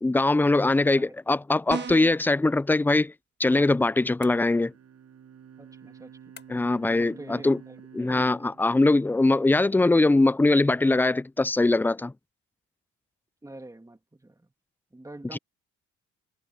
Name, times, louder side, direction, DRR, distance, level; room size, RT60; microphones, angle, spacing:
voice 1, 0.0-3.1 3.4-4.7 6.5-7.6 7.9-12.1 15.3-15.4, left 2 dB, 5° left, 0.3 m, -22 dB
sound 1, 1.7-2.3, right 5 dB, 35° right, 1.4 m, -33 dB
sound 2, 4.2-4.9 6.4-6.9, left 5 dB, 35° left, 6.2 m, -52 dB
Bowed string instrument, 4.3-9.7, right 8 dB, 55° right, 7.3 m, -50 dB
voice 2, 5.6-6.4 7.0-8.3 13.4-14.5 14.9-15.4, right 2 dB, 10° right, 2.8 m, -46 dB
cardioid pair, 90°, 30 cm